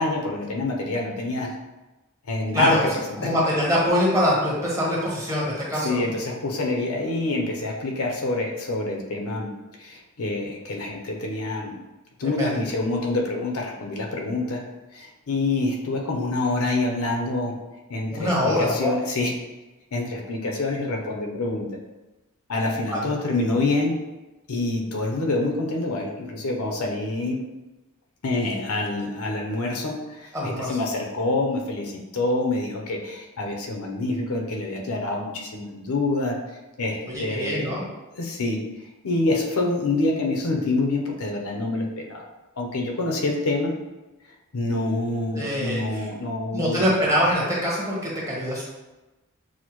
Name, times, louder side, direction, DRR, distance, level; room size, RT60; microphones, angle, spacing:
voice 1, 0.0-1.5 2.3-2.9 5.7-9.5 9.8-11.8 12.2-14.6 14.9-17.5 17.9-19.3 19.9-21.7 22.5-23.9 24.5-27.4 28.2-36.4 36.8-37.7 38.1-42.2 42.6-43.7 44.5-47.0, left 2 dB, 75° left, 0 dB, 0.7 m, -26 dB
voice 2, 2.5-2.9 3.2-6.0 12.2-12.5 18.1-18.9 22.9-23.0 30.3-30.7 37.1-37.8 45.3-45.8 46.5-48.6, equal, 15° right, -6 dB, 1.1 m, -23 dB
6.3 x 2.1 x 3.0 m, 1.1 s
head